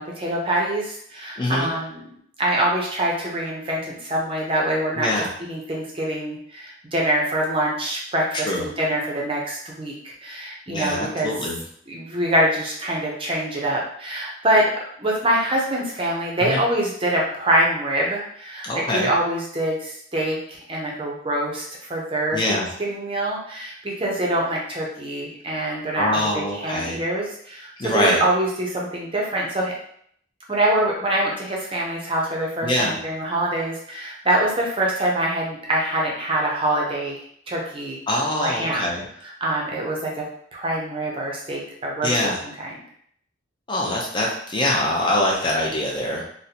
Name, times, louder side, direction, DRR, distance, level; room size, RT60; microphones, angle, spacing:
voice 1, 0.0-2.0 2.4-9.9 10.2-11.3 11.9-29.7 30.5-37.2 37.5-38.0 38.4-38.8 39.4-40.3 40.5-42.2 42.6-42.7, right 1 dB, 25° right, -2 dB, 0.6 m, -25 dB
voice 2, 1.4-1.7 5.0-5.3 8.4-8.7 10.7-11.6 16.4-16.6 18.6-19.1 22.3-22.7 25.9-27.0 27.8-28.2 32.6-32.9 38.1-39.0 42.0-42.4 43.7-46.3, left 1 dB, 25° left, -2 dB, 0.5 m, -24 dB
4.1 x 2.1 x 2.7 m, 0.65 s
head